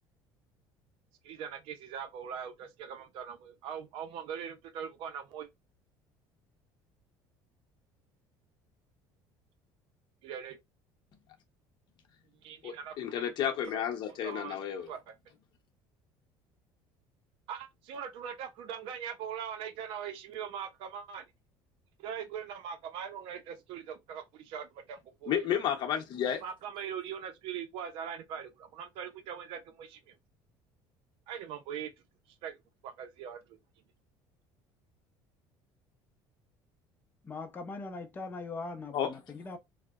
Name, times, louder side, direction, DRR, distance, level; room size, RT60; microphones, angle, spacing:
voice 1, 1.2-5.5 10.2-10.6 12.4-12.9 13.6-13.8 14.1-14.6 14.9-15.2 17.5-21.2 22.0-25.5 26.4-30.1 31.3-31.9 32.3-32.6 32.8-33.6, right 8 dB, 70° right, 0.5 m, -41 dB
voice 2, 12.6-14.9 25.3-26.4 38.9-39.1, left 9 dB, 55° left, 0.7 m, -32 dB
voice 3, 37.2-39.6, left 3 dB, 20° left, 0.5 m, -40 dB
2.6 x 2.0 x 2.3 m
cardioid pair, 120°, 9 cm